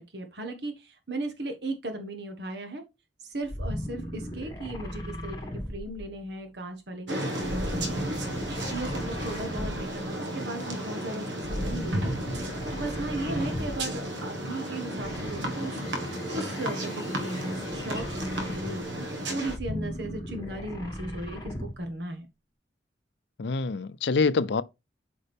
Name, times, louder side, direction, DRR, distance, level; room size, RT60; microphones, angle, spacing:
voice 1, 0.0-2.8 3.2-5.4 5.7-8.1 8.7-12.2 12.6-18.9 19.3-22.3, right 2 dB, 60° right, 1.3 m, -36 dB
sound 1, 3.4-6.5 7.4-10.1 11.4-14.0 15.0-18.9 19.4-21.9, equal, 20° left, 1.7 m, -37 dB
sound 2, 7.1-19.6, right 1 dB, 80° right, 1.6 m, -33 dB
voice 2, 23.4-24.6, left 4 dB, 65° left, 0.5 m, -25 dB
8.3 x 5.1 x 3.5 m
head